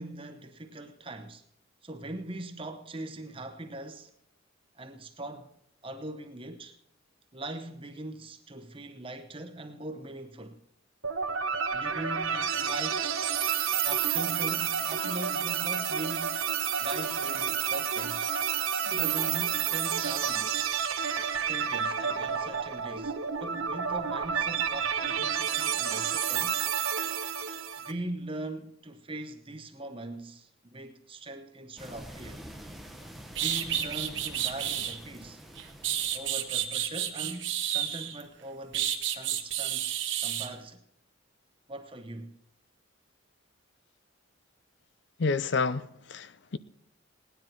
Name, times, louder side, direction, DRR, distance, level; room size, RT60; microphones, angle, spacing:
voice 1, 0.0-1.4 1.8-4.1 4.7-5.5 5.8-6.7 7.3-10.6 11.7-13.1 13.8-16.4 16.8-18.3 18.9-20.6 21.4-26.6 27.8-32.4 33.4-35.4 36.1-39.9 40.2-40.8 41.7-42.3, right 1 dB, 25° right, 1.0 m, -41 dB
sound 1, 11.0-27.9, right 7 dB, 90° right, 1.1 m, -30 dB
sound 2, 31.8-37.0, equal, ahead, 0.9 m, -47 dB
sound 3, 32.9-33.0 33.3-35.0 35.6-38.2 38.7-40.5, right 11 dB, 60° right, 1.2 m, -30 dB
voice 2, 45.2-46.6, left 4 dB, 55° left, 0.6 m, -29 dB
18.0 x 10.0 x 4.6 m
head